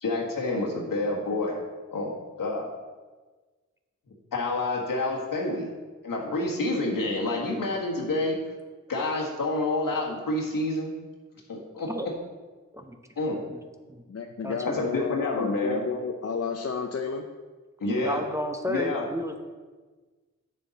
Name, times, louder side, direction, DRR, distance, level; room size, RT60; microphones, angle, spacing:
voice 1, 0.0-1.6 1.9-2.1 2.4-2.7 4.3-5.7 6.0-8.4 8.9-10.9 11.5-11.9 13.2-13.4 14.6-15.8 17.8-18.2 18.7-19.0, left 2 dB, 85° left, -1 dB, 1.6 m, -28 dB
voice 2, 14.1-17.3, left 5 dB, 50° left, 3 dB, 0.6 m, -31 dB
voice 3, 18.0-19.4, equal, 10° right, 4 dB, 0.8 m, -32 dB
7.8 x 6.8 x 4.1 m, 1.4 s
cardioid pair, 55°, 32 cm